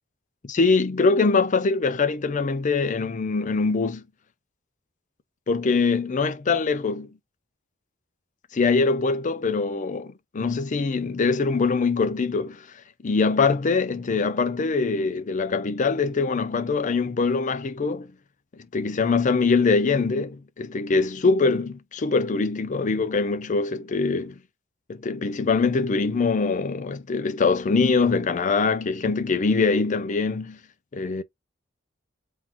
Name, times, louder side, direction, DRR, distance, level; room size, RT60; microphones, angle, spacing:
voice 1, 0.4-4.0 5.5-7.1 8.5-12.6 13.0-18.1 18.7-24.4 24.9-30.6 30.9-31.2, left 4 dB, 40° left, 0.5 m, -23 dB
3.7 x 2.5 x 4.3 m
head